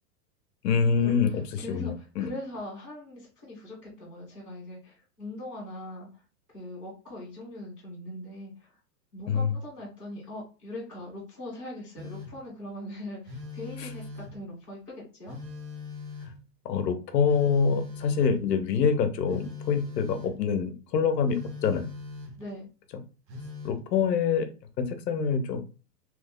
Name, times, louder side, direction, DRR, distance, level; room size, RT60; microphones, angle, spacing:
voice 1, 0.6-1.3 1.7-2.3 9.3-9.5 13.8-13.9 16.6-21.9 23.6-24.5 24.8-25.6, left 6 dB, 80° left, 8 dB, 0.8 m, -25 dB
voice 2, 1.6-6.2 6.5-8.8 9.1-15.4 22.4-22.7, left 1 dB, 10° right, -11 dB, 0.5 m, -41 dB
Telephone, 12.0-12.5 13.3-14.5 15.3-16.5 17.3-18.5 19.3-20.4 21.3-22.5 23.3-23.8, left 4 dB, 90° right, 1.1 m, -41 dB
3.0 x 2.1 x 3.5 m, 0.34 s
supercardioid pair, 175°, 49 cm